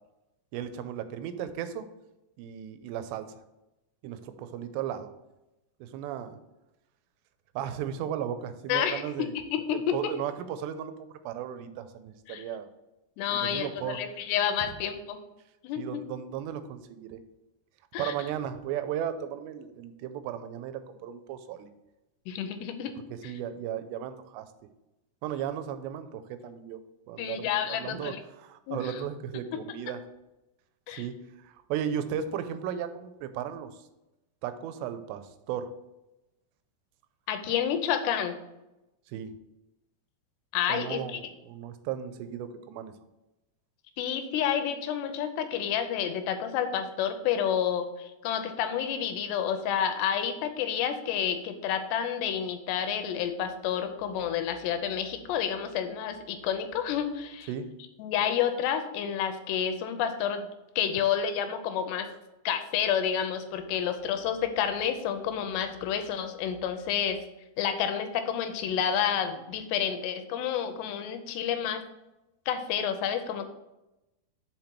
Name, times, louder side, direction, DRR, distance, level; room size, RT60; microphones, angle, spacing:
voice 1, 0.5-1.9 2.4-3.3 4.0-5.1 5.8-6.4 7.6-9.3 9.7-10.9 11.2-12.7 13.3-14.0 15.8-17.2 18.0-21.7 23.2-24.5 25.2-26.8 27.1-30.0 30.9-31.2 31.5-33.7 34.4-35.7 39.1-39.3 40.7-42.9 57.5-57.7, right 9 dB, 85° right, 11 dB, 2.7 m, -35 dB
voice 2, 8.7-10.1 12.3-12.4 13.2-15.2 15.6-16.0 17.9-18.1 22.3-22.9 23.2-23.3 27.2-28.2 28.7-29.0 30.9-31.0 37.3-38.3 40.5-41.2 44.0-57.5 58.0-60.5 60.8-62.1 62.5-67.2 67.6-71.8 72.5-73.5, left 8 dB, 85° left, 8 dB, 2.8 m, -29 dB
5.8 x 5.3 x 4.5 m, 0.96 s
omnidirectional pair, 4.9 m